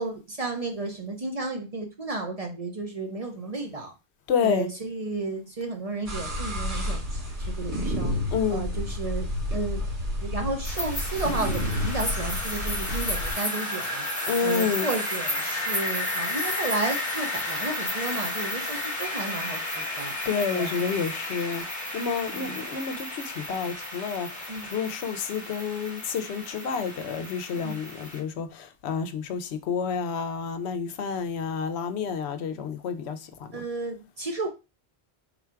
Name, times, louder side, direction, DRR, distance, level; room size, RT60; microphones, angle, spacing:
voice 1, 0.0-3.9 4.4-7.0 7.5-8.1 8.5-9.8 10.2-14.1 14.4-20.1 20.5-20.7 22.3-22.6 24.5-24.7 27.6-27.8 33.5-34.5, right 2 dB, 40° right, 0.6 m, -33 dB
voice 2, 4.3-4.7 8.3-8.7 14.3-14.9 19.9-21.6 21.9-33.6, left 6 dB, 75° left, 0.8 m, -29 dB
sound 1, 6.1-13.3, left 1 dB, 75° right, 2.0 m, -30 dB
sound 2, 10.6-28.2, left 1 dB, 15° left, 1.0 m, -32 dB
3.8 x 2.4 x 4.4 m
omnidirectional pair, 1.1 m